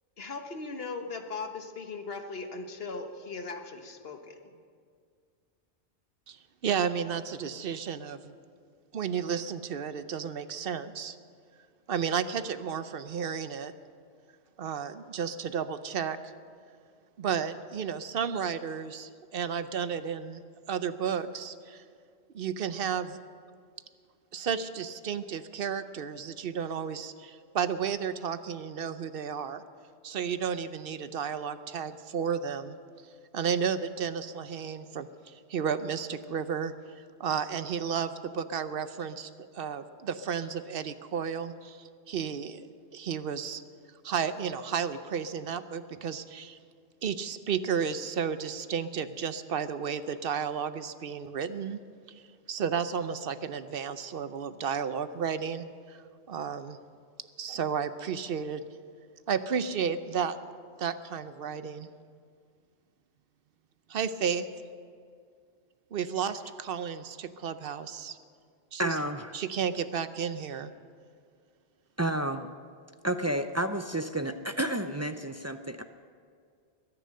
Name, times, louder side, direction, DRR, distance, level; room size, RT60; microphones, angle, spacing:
voice 1, 0.2-4.4, left 4 dB, 60° left, 5 dB, 1.5 m, -38 dB
voice 2, 6.6-8.3 8.9-11.2 11.9-13.7 14.6-16.2 17.2-20.4 20.7-21.8 22.3-23.2 24.3-29.6 30.0-32.8 33.3-36.7 37.2-39.3 39.5-42.7 42.9-43.6 44.0-46.6 47.0-51.8 52.1-52.2 52.5-56.8 57.4-58.6 59.3-60.4 60.8-61.9 63.9-64.5 65.9-68.2 68.7-69.0 69.3-70.7, right 7 dB, 60° right, 12 dB, 0.8 m, -32 dB
voice 3, 68.8-69.3 72.0-72.5 73.0-75.8, right 1 dB, 25° right, 8 dB, 0.3 m, -30 dB
21.5 x 10.0 x 6.5 m, 2.1 s
omnidirectional pair, 1.2 m